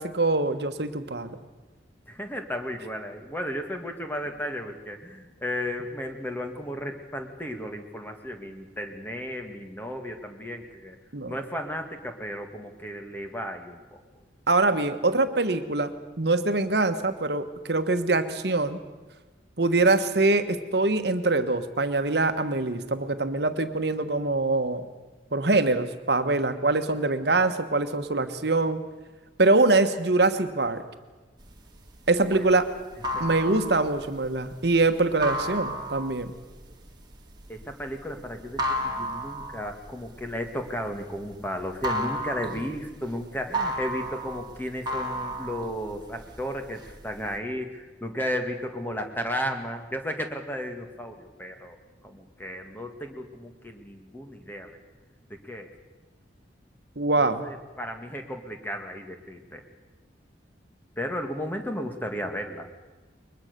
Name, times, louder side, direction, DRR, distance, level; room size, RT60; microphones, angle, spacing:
voice 1, 0.0-1.4 11.1-11.3 14.5-15.9 16.2-18.8 19.6-24.8 25.3-28.8 29.4-30.8 32.1-32.7 33.2-36.3 57.0-57.5, right 2 dB, 60° right, 9 dB, 1.3 m, -24 dB
voice 2, 2.1-11.0 11.3-14.0 32.3-32.5 33.1-33.6 37.5-51.8 52.0-54.7 55.3-55.7 57.2-59.6 61.0-62.7, equal, 10° left, 4 dB, 1.9 m, -34 dB
sound 1, 31.5-41.3 41.6-46.4 46.8-47.4, equal, 25° right, 2.2 m, -32 dB
22.0 x 21.0 x 6.8 m, 1.3 s
head